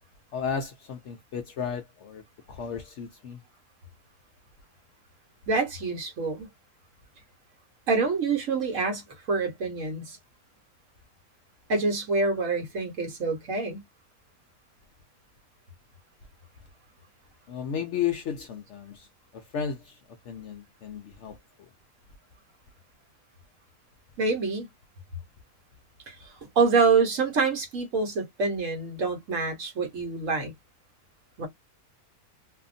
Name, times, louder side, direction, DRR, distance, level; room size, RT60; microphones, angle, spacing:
voice 1, 0.3-2.2 2.5-3.4 17.5-19.1 19.5-20.0 20.3-21.4, left 7 dB, 65° left, 0.8 m, -33 dB
voice 2, 5.5-6.5 7.9-10.2 11.7-13.8 24.2-24.7 26.1-30.5 31.4-31.5, right 4 dB, 60° right, 1.4 m, -26 dB
2.7 x 2.5 x 2.4 m
omnidirectional pair, 1.6 m